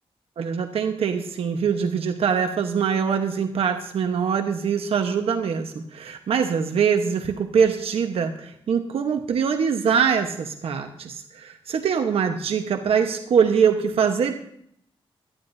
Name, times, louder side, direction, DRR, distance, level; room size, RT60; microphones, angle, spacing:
voice 1, 0.4-14.4, right 7 dB, 75° right, 5 dB, 1.1 m, -23 dB
18.0 x 12.5 x 2.7 m, 0.69 s
wide cardioid pair, 175°, 10 cm